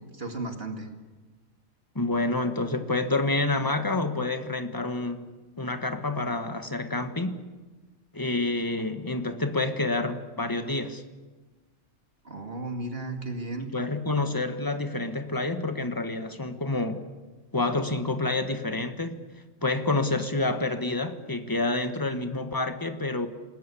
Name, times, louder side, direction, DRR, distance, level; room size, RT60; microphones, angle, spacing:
voice 1, 0.1-0.9 12.2-13.7, right 2 dB, 45° right, 4 dB, 2.5 m, -34 dB
voice 2, 1.9-5.3 5.6-7.4 8.1-11.0 13.6-17.1 17.5-19.2 19.6-23.3, left 2 dB, 15° left, 8 dB, 1.5 m, -28 dB
28.0 x 19.5 x 8.5 m, 1.3 s
omnidirectional pair, 1.4 m